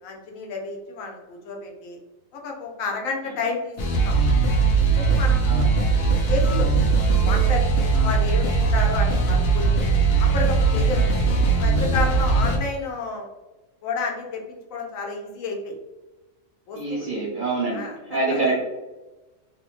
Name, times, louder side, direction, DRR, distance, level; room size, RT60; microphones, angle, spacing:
voice 1, 0.0-2.0 2.3-4.2 4.7-5.5 6.3-6.7 7.2-9.8 10.2-11.0 11.5-13.3 13.8-15.7 16.7-17.1 17.7-18.0 18.3-18.5, left 4 dB, 80° left, 1 dB, 1.0 m, -31 dB
sound 1, 3.8-12.6, right 4 dB, 60° left, 0.7 m, -20 dB
voice 2, 16.7-18.6, right 3 dB, 55° right, -4 dB, 0.6 m, -26 dB
2.6 x 2.0 x 3.0 m, 1.1 s
omnidirectional pair, 1.4 m